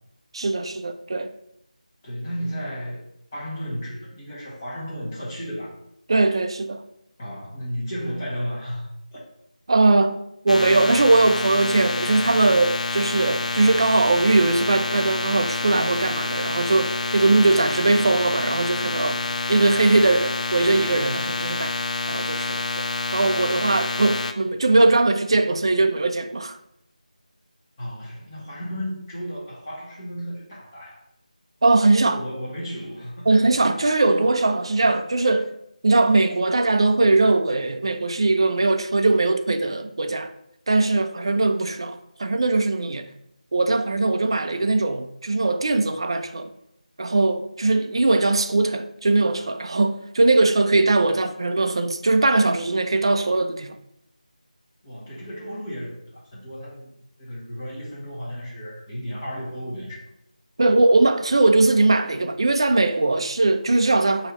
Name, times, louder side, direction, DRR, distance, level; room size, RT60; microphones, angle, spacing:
voice 1, 0.3-1.3 6.1-6.8 9.7-10.2 10.4-21.7 22.1-22.9 23.1-26.6 31.6-32.2 33.3-35.5 35.8-40.3 40.7-43.1 43.5-46.5 47.0-53.8 60.6-64.3, right 2 dB, 40° right, 0.4 m, -20 dB
voice 2, 2.0-3.0 3.3-5.8 7.2-9.2 27.8-31.0 32.0-33.3 54.8-60.0, equal, 20° left, 1.3 m, -33 dB
sound 1, 10.5-24.3, left 3 dB, 60° left, 0.4 m, -28 dB
5.4 x 2.8 x 3.0 m
figure-of-eight pair, 165°, 4 cm